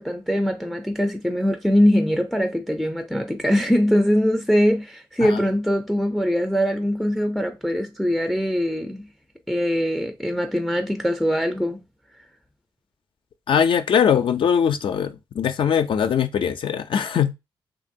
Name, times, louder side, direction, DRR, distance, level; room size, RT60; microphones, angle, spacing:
voice 1, 0.0-9.1 9.5-11.8, equal, ahead, 0.4 m, -22 dB
voice 2, 13.5-17.3, left 8 dB, 65° left, 0.4 m, -21 dB
2.9 x 2.5 x 2.6 m
cardioid pair, 60°, 9 cm